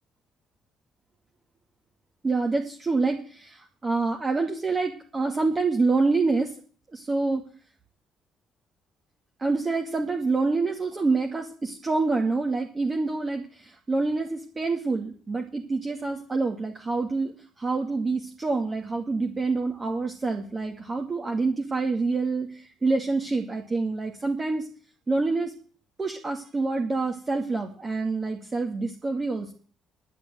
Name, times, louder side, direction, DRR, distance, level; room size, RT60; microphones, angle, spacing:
voice 1, 2.2-6.5 6.9-7.5 9.4-24.7 25.1-25.5 26.0-29.5, right 3 dB, 30° right, 2 dB, 2.3 m, -27 dB
11.5 x 8.8 x 7.8 m, 0.43 s
hypercardioid pair, 45°, 0 cm